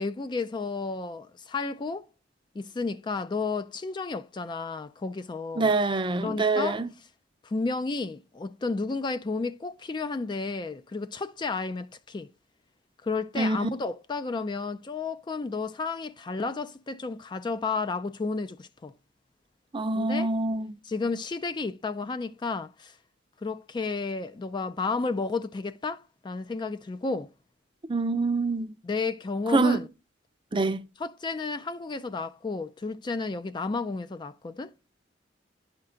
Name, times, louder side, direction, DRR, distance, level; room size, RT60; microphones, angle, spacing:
voice 1, 0.0-2.1 2.6-5.7 6.2-6.8 7.4-12.3 13.0-18.9 19.9-20.3 20.8-23.0 23.4-27.3 28.8-29.9 31.0-34.7, left 3 dB, 25° left, 0.3 m, -32 dB
voice 2, 5.6-6.9 13.4-13.7 19.7-20.7 27.9-28.7 29.5-29.8 30.5-30.8, right 3 dB, 25° right, 0.5 m, -25 dB
10.5 x 4.4 x 3.7 m
head